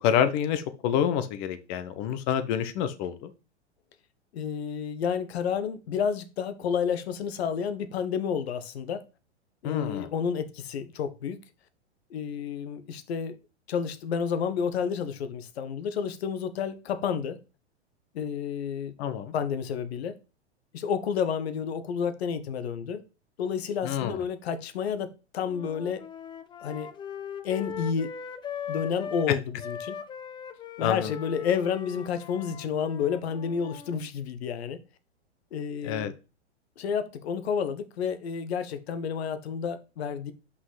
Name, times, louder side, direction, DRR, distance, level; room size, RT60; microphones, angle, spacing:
voice 1, 0.0-3.3 9.6-10.1 19.0-19.3 23.8-24.2 29.3-29.4 30.8-31.1 35.8-36.1, left 9 dB, 40° left, 1.1 m, -27 dB
voice 2, 4.3-9.0 9.6-11.4 12.1-13.4 13.7-17.4 18.1-18.9 19.3-20.1 20.7-23.0 23.4-26.1 26.6-26.9 27.4-28.1 28.7-30.0 30.8-34.8 35.5-36.1 36.8-40.3, left 7 dB, 65° left, 1.2 m, -30 dB
sound 1, 25.4-29.3 29.6-34.0, left 7 dB, 15° left, 0.5 m, -40 dB
5.6 x 5.6 x 4.0 m
hypercardioid pair, 110°, 34 cm